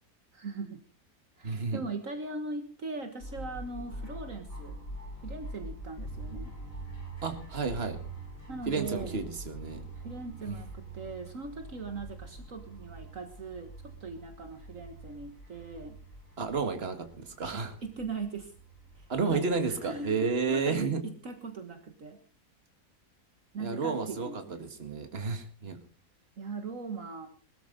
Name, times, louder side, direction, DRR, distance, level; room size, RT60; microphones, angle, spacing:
voice 1, 0.3-0.8 1.4-4.8 5.2-6.6 8.5-9.2 9.9-16.0 17.5-18.5 19.0-19.4 19.8-22.2 23.5-24.6 26.4-27.3, right 3 dB, 60° right, 6 dB, 1.9 m, -40 dB
voice 2, 1.4-1.8 7.2-8.0 8.7-9.8 10.5-10.6 16.4-17.7 19.1-21.0 23.6-25.8, right 4 dB, 40° right, 7 dB, 2.1 m, -31 dB
sound 1, 3.2-20.7, right 2 dB, 60° left, 7.4 m, -45 dB
21.0 x 13.5 x 3.9 m, 0.36 s
omnidirectional pair, 1.6 m